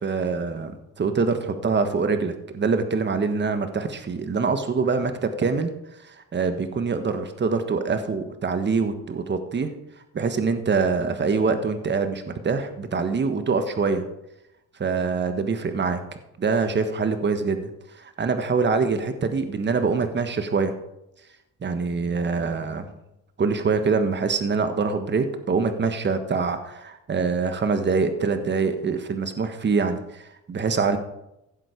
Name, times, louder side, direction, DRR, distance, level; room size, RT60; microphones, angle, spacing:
voice 1, 0.0-5.7 6.0-9.7 10.1-14.0 14.8-16.0 16.4-20.7 21.6-22.9 23.4-31.0, right 4 dB, 35° right, 8 dB, 1.4 m, -24 dB
16.0 x 7.6 x 5.2 m, 0.87 s
cardioid pair, 90°, 30 cm